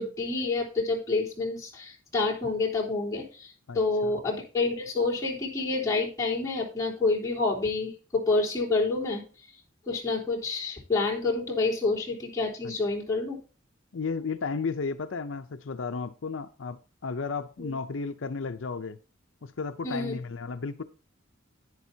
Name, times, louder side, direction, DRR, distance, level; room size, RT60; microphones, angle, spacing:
voice 1, 0.0-9.2 9.9-13.4 17.6-17.7 19.8-20.1, left 3 dB, 15° left, 3.7 m, -28 dB
voice 2, 3.7-4.2 12.6-12.7 13.9-19.0 19.4-20.8, left 4 dB, 75° left, 0.6 m, -34 dB
10.5 x 10.0 x 2.8 m
head